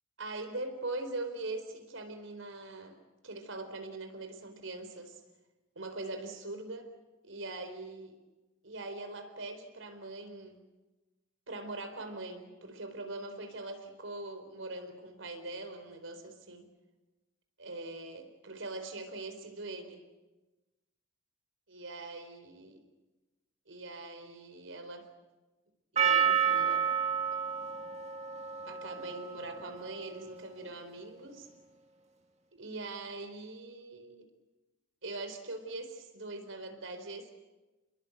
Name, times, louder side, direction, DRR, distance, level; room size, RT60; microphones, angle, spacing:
voice 1, 0.2-3.0 3.2-5.2 5.8-6.9 7.2-8.2 8.6-10.6 11.5-16.7 17.6-20.0 21.7-22.8 23.7-25.1 25.9-26.9 28.6-31.5 32.5-34.3 35.0-37.3, right 2 dB, 75° right, 7 dB, 4.1 m, -42 dB
Percussion, 26.0-30.5, right 7 dB, 35° right, 1.8 m, -31 dB
28.0 x 21.5 x 8.0 m, 1.1 s
head